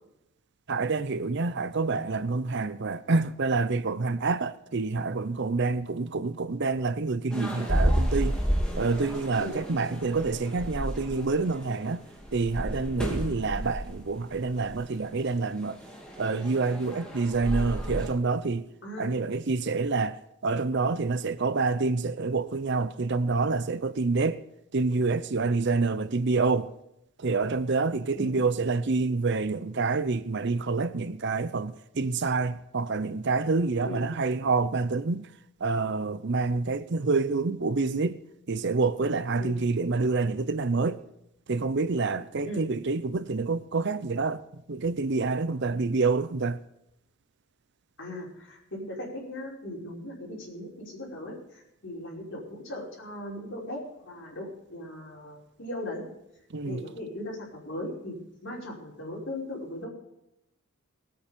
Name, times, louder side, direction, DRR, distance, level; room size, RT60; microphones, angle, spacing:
voice 1, 0.7-12.0 12.3-15.8 16.2-18.7 19.0-24.4 24.7-26.7 27.2-35.3 35.6-38.2 38.5-41.0 41.5-46.6 56.5-56.8, right 3 dB, 50° right, 0.6 m, -27 dB
sound 1, 7.3-18.1, equal, 5° left, 2.6 m, -31 dB
voice 2, 48.0-56.1 56.6-58.1 58.4-59.9, left 1 dB, 55° left, 5.4 m, -38 dB
19.5 x 9.1 x 5.2 m
head